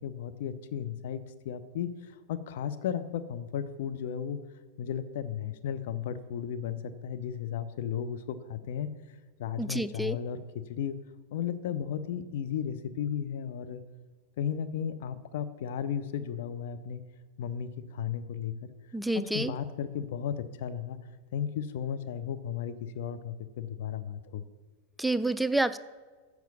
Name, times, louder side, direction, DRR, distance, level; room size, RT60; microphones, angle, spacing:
voice 1, 0.0-4.4 4.8-8.9 9.4-11.0 11.3-13.8 14.4-17.0 17.4-18.5 19.1-21.0 21.3-24.4, left 8 dB, 55° left, 10 dB, 0.6 m, -34 dB
voice 2, 9.6-10.2 18.9-19.5 25.0-25.8, right 2 dB, ahead, 13 dB, 0.3 m, -28 dB
7.4 x 5.9 x 6.9 m, 1.4 s
figure-of-eight pair, 90°, 0 cm